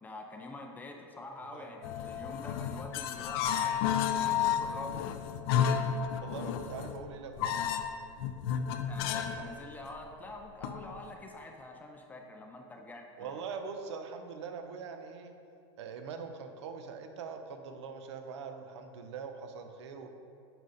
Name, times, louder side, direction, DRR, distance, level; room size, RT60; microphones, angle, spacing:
voice 1, 0.0-5.0 8.9-13.5, left 2 dB, 10° left, 3 dB, 0.5 m, -46 dB
voice 2, 1.4-1.7 6.2-7.6 13.2-15.3 15.8-20.1, right 5 dB, 75° right, 6 dB, 0.9 m, -42 dB
sound 1, 1.8-9.5 9.7-9.9 10.6-11.1, left 8 dB, 60° left, 0.6 m, -32 dB
9.1 x 5.1 x 4.1 m, 2.5 s
supercardioid pair, 145°, 15 cm